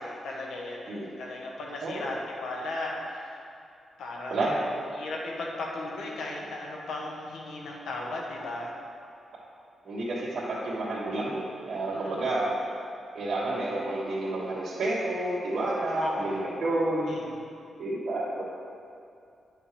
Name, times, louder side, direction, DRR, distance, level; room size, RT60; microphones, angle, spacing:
voice 1, 0.0-3.4 4.0-4.4 4.9-8.7 11.9-12.3 16.0-16.2 17.1-17.4, left 2 dB, 85° left, -2 dB, 1.1 m, -36 dB
voice 2, 9.8-12.5 13.1-17.1 17.8-18.4, right 2 dB, 55° right, -11 dB, 1.5 m, -30 dB
10.5 x 6.5 x 3.3 m, 2.5 s
wide cardioid pair, 140°, 0 cm